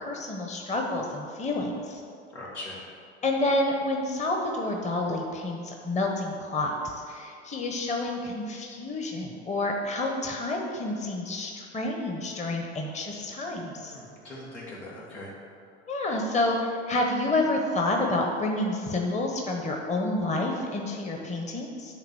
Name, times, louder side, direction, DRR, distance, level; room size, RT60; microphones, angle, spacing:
voice 1, 0.0-2.0 3.2-13.9 15.9-21.9, left 2 dB, 20° left, 1 dB, 1.0 m, -29 dB
voice 2, 2.3-2.8 13.7-15.3, left 1 dB, 85° left, -6 dB, 2.2 m, -41 dB
9.9 x 3.6 x 6.3 m, 2.4 s
hypercardioid pair, 75°, 34 cm